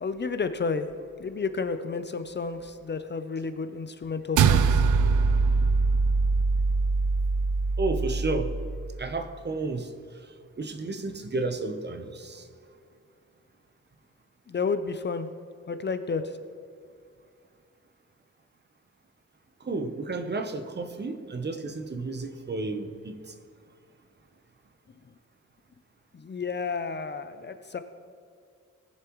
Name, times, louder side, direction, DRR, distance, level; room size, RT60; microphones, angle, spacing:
voice 1, 0.0-0.9 1.2-4.8 14.5-15.3 15.7-16.4 26.1-27.8, left 4 dB, 35° left, 9 dB, 0.5 m, -31 dB
sound 1, 4.4-8.9, right 4 dB, 85° right, 0.5 m, -23 dB
voice 2, 7.8-8.5 9.0-9.9 10.3-12.5 19.6-23.3, right 3 dB, 35° right, 8 dB, 0.8 m, -32 dB
19.5 x 7.3 x 3.1 m, 2.3 s
wide cardioid pair, 115°, 30 cm